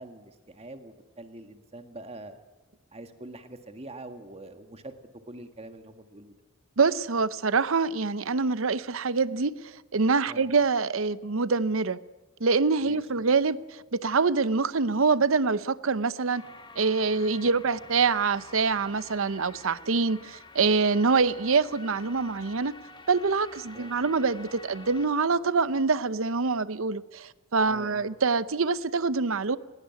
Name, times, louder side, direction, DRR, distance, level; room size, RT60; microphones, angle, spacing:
voice 1, 0.0-2.4 2.9-4.9 5.3-6.3 10.3-10.5 12.8-13.0 17.4-17.6 23.7-23.9 27.7-28.1, right 2 dB, 30° right, 8 dB, 1.8 m, -44 dB
voice 2, 6.8-9.5 9.9-12.0 12.4-13.6 13.9-16.4 16.8-22.7 23.1-29.6, right 4 dB, 70° right, 16 dB, 0.8 m, -25 dB
sound 1, 16.3-25.1, left 3 dB, 25° left, 1.9 m, -49 dB
20.0 x 17.5 x 9.4 m, 1.2 s
head